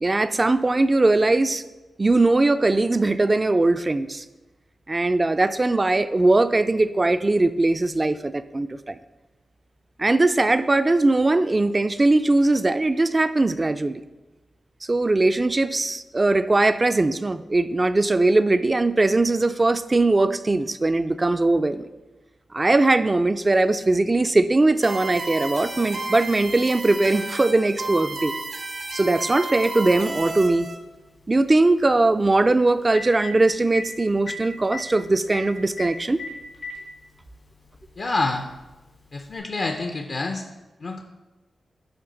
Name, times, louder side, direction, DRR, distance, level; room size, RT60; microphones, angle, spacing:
voice 1, 0.0-1.6 2.0-4.2 4.9-9.0 10.0-14.0 14.9-21.9 22.5-28.3 28.9-30.7 31.3-36.2, right 2 dB, 30° right, 12 dB, 0.3 m, -20 dB
sound 1, 24.8-30.8, right 2 dB, 80° right, 0.9 m, -32 dB
Telephone, 30.1-30.2 32.4-32.5 32.8-33.3 33.7-33.9 34.3-34.4 34.6-34.8 35.3-35.4 35.8-35.9 36.2-36.8 37.8-37.9 39.3-39.4, left 4 dB, 85° left, 2.1 m, -33 dB
voice 2, 38.0-38.5 39.1-40.5 40.8-41.0, left 3 dB, 60° left, 4 dB, 0.5 m, -27 dB
10.0 x 3.6 x 3.9 m, 1.1 s
cardioid pair, 60°, 0 cm